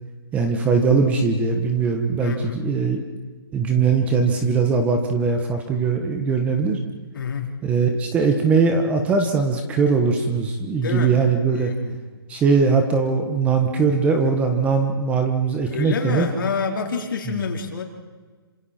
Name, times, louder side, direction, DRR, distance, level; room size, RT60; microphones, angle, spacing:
voice 1, 0.3-3.0 3.5-6.8 7.6-11.7 12.3-16.3 17.3-17.4, right 5 dB, 10° right, 5 dB, 1.3 m, -20 dB
voice 2, 2.2-2.6 7.1-7.5 10.8-11.1 11.5-12.0 15.7-17.8, left 6 dB, 55° left, 2 dB, 3.9 m, -28 dB
27.5 x 26.5 x 4.4 m, 1.4 s
hypercardioid pair, 160°, 13 cm